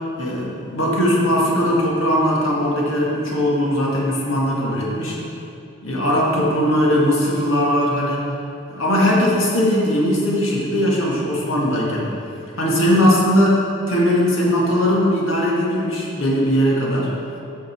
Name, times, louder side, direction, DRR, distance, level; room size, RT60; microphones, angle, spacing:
voice 1, 0.2-5.2 5.8-8.2 8.7-12.1 12.6-17.1, equal, 80° left, -4 dB, 1.8 m, -19 dB
8.7 x 6.4 x 4.6 m, 2.7 s
head